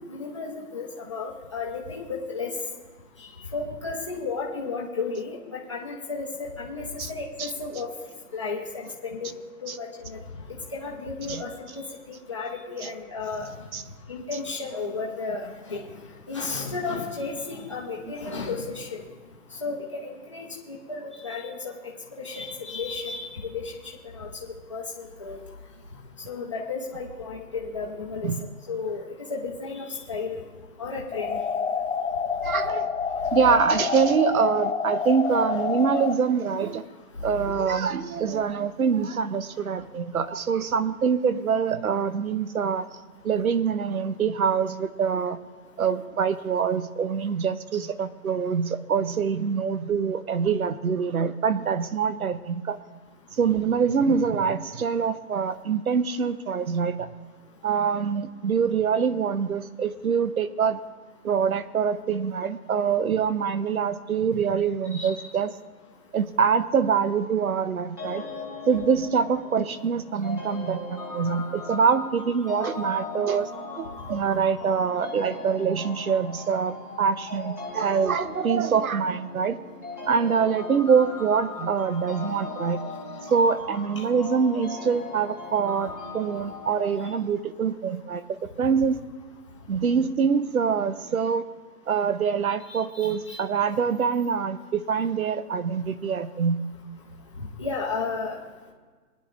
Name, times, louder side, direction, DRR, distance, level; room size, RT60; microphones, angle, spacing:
voice 1, 0.1-2.5 3.5-7.9 8.3-10.2 10.7-11.8 12.1-13.5 14.1-16.0 16.3-19.0 19.6-21.7 22.2-23.7 24.0-24.3 24.7-25.4 26.3-28.3 28.7-29.0 29.3-30.4 30.8-31.4 64.9-65.3 92.7-93.4 97.4-98.4, left 4 dB, 20° left, -3 dB, 0.8 m, -33 dB
sound 1, 31.1-36.1, left 6 dB, 50° left, 0.8 m, -28 dB
voice 2, 32.4-32.9 33.3-36.8 37.2-42.9 43.2-45.4 45.8-52.8 53.4-57.1 57.6-60.8 61.2-65.5 66.1-68.2 68.7-73.5 73.8-79.6 80.1-82.8 83.3-89.0 89.7-91.4 91.9-96.6, right 6 dB, 65° right, 13 dB, 0.8 m, -25 dB
sound 2, 68.0-87.2, left 3 dB, 10° right, 0.8 m, -39 dB
21.5 x 10.5 x 2.5 m, 1.4 s
hypercardioid pair, 175°, 47 cm